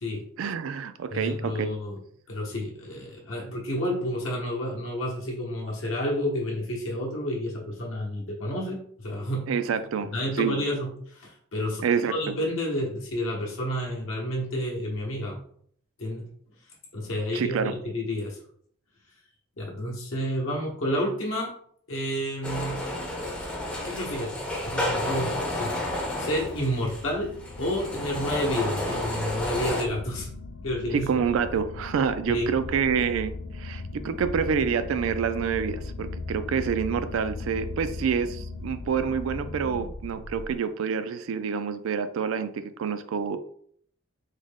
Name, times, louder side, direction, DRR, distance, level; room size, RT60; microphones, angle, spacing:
voice 1, 0.4-1.7 9.5-10.1 10.4-10.6 11.8-12.1 17.3-17.7 30.9-43.4, right 6 dB, 75° right, 11 dB, 0.3 m, -27 dB
voice 2, 1.1-2.0 2.3-9.5 10.1-15.4 16.0-16.3 16.9-18.4 19.6-21.5 21.9-22.8 23.8-24.4 24.6-27.3 27.6-30.3 30.6-31.1 32.3-32.5, equal, 70° left, -2 dB, 0.8 m, -30 dB
sound 1, 22.4-29.8, left 1 dB, 5° left, 0.5 m, -31 dB
sound 2, 23.4-40.6, left 3 dB, 85° left, 0.4 m, -39 dB
3.6 x 2.1 x 3.5 m, 0.62 s
head